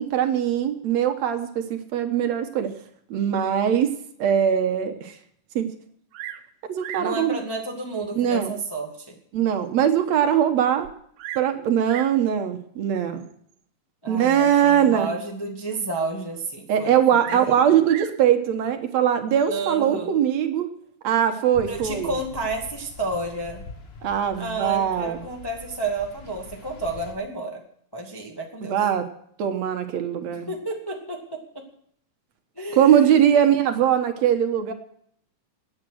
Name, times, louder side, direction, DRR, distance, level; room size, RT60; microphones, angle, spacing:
voice 1, 0.0-2.7 3.1-5.1 5.6-5.7 6.7-7.4 8.1-8.5 9.3-10.9 11.4-13.2 14.1-15.1 16.7-20.7 21.0-22.1 24.0-25.2 28.6-29.1 29.4-30.5 32.8-34.7, right 9 dB, 70° right, 7 dB, 2.3 m, -21 dB
Bird vocalization bird call bird song, 6.1-6.5 6.8-7.2 8.0-8.1 8.8-8.9 9.4-9.5 9.7-9.8 10.8-11.5 11.8-12.2 13.2-13.5 17.2-18.2 19.3-19.7, right 12 dB, 90° right, 2.2 m, -38 dB
voice 2, 7.0-9.1 14.0-17.0 17.3-17.8 19.5-20.2 21.7-23.6 24.4-27.6 27.9-28.8 30.5-31.4 32.6-33.5, right 2 dB, 10° left, 1 dB, 1.2 m, -31 dB
sound 1, 21.5-27.1, left 4 dB, 65° left, 0.6 m, -43 dB
21.5 x 8.9 x 6.3 m, 0.66 s
omnidirectional pair, 3.3 m